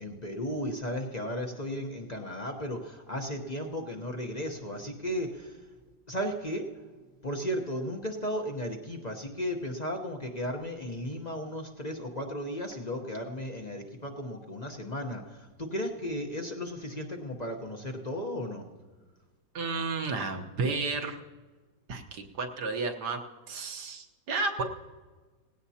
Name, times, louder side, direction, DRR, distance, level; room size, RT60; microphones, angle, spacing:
voice 1, 0.0-5.6 6.1-6.7 7.2-18.6, equal, 30° left, 3 dB, 0.8 m, -35 dB
voice 2, 19.5-21.2 21.9-23.2 23.5-24.6, right 3 dB, 65° right, 3 dB, 1.6 m, -32 dB
18.5 x 16.5 x 2.8 m, 1.4 s
omnidirectional pair, 2.0 m